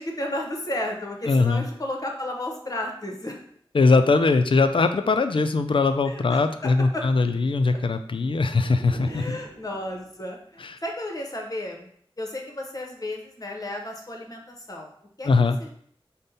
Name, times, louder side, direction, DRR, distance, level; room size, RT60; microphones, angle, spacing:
voice 1, 0.0-3.4 6.1-7.0 9.0-11.9 12.2-14.9 15.2-15.3 15.6-15.7, left 1 dB, 40° left, 1 dB, 0.9 m, -33 dB
voice 2, 1.3-1.7 3.7-9.4 10.6-10.8 15.2-15.6, left 3 dB, 60° left, 9 dB, 0.4 m, -21 dB
sound 1, 7.9-10.5, right 2 dB, 80° right, 0.6 m, -46 dB
5.2 x 2.1 x 4.0 m, 0.63 s
wide cardioid pair, 60°, 10 cm